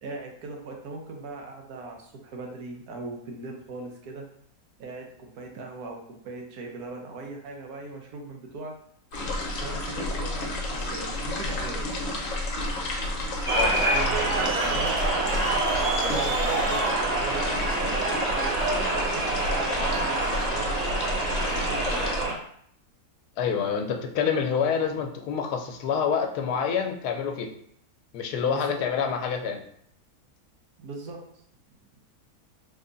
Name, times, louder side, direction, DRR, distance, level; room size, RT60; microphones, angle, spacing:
voice 1, 0.0-4.3 4.8-8.7 9.6-11.8 13.7-22.4 28.5-28.8 30.8-31.2, right 3 dB, 80° right, 1 dB, 1.3 m, -39 dB
sound 1, 9.1-22.3, left 1 dB, 60° left, 1.0 m, -31 dB
voice 2, 13.5-13.8 23.4-27.5 28.1-29.6, left 7 dB, 85° left, 4 dB, 1.1 m, -27 dB
sound 2, 13.5-22.3, right 2 dB, 55° right, 0.4 m, -26 dB
3.5 x 2.3 x 3.8 m, 0.67 s
omnidirectional pair, 1.6 m